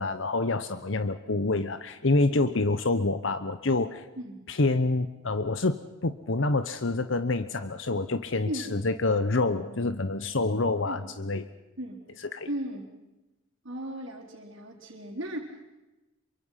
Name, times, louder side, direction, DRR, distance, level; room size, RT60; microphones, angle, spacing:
voice 1, 0.0-4.1 4.5-11.4 12.3-12.5, left 2 dB, 65° left, 11 dB, 1.0 m, -27 dB
voice 2, 12.5-12.9 13.6-15.7, right 1 dB, 65° right, -6 dB, 4.3 m, -36 dB
27.5 x 24.0 x 5.7 m, 1.0 s
head